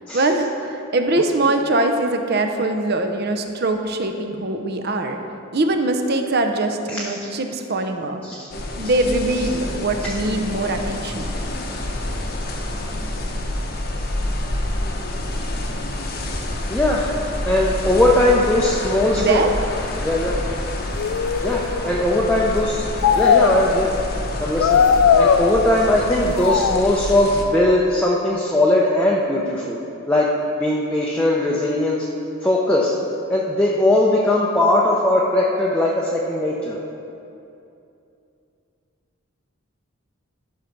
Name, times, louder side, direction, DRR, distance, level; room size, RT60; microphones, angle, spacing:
voice 1, 0.1-5.2 5.5-8.2 8.8-11.3 19.2-19.5, right 2 dB, 50° right, 5 dB, 0.7 m, -22 dB
voice 2, 6.9-7.3 8.2-8.5 8.8-8.9 10.0-10.1 16.7-17.1 17.4-19.4 20.0-20.4 21.4-23.9 24.4-24.8 25.2-29.8 30.1-30.3 30.6-32.1 32.4-32.9 33.3-36.8, left 1 dB, 5° left, -5 dB, 0.6 m, -19 dB
sound 1, 8.5-27.5, left 1 dB, 45° left, 0.9 m, -28 dB
sound 2, 19.7-19.9 20.8-22.1 23.0-24.1 24.6-26.0 26.4-27.0, left 6 dB, 80° left, 0.3 m, -19 dB
11.5 x 5.8 x 5.2 m, 2.7 s
head